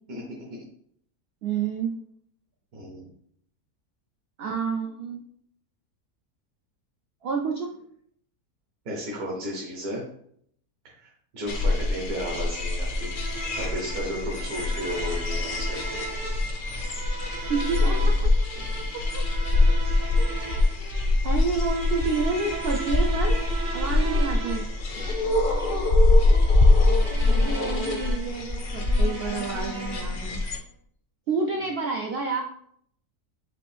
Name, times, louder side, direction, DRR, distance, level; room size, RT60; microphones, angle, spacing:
voice 1, 1.4-1.9 4.4-5.2 7.2-7.7 17.5-18.4 19.1-19.2 20.2-20.4 21.2-23.4 23.7-24.6 27.2-30.4 31.3-32.4, right 4 dB, 85° right, 1 dB, 0.5 m, -29 dB
voice 2, 2.7-3.1 8.8-10.0 10.9-13.1 13.5-15.8 18.5-18.8 24.9-25.3, equal, 70° right, -4 dB, 1.6 m, -34 dB
sound 1, 11.5-30.6, left 2 dB, 55° left, 0.5 m, -24 dB
sound 2, 12.3-30.4, right 4 dB, 45° right, 0.7 m, -38 dB
5.8 x 2.6 x 3.4 m, 0.66 s
omnidirectional pair, 1.6 m